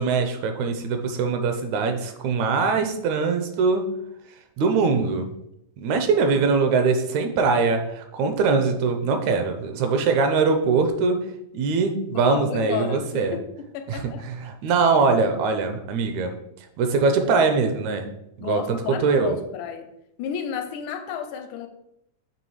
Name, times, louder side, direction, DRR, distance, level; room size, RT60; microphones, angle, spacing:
voice 1, 0.0-3.9 4.6-5.3 5.8-11.3 11.5-13.4 13.9-16.3 16.8-18.1 18.4-19.4, right 4 dB, 80° right, 6 dB, 1.9 m, -22 dB
voice 2, 12.1-14.3 18.4-19.9 20.2-21.7, left 8 dB, 85° left, 7 dB, 2.0 m, -32 dB
7.0 x 3.4 x 4.8 m, 0.81 s
omnidirectional pair, 3.4 m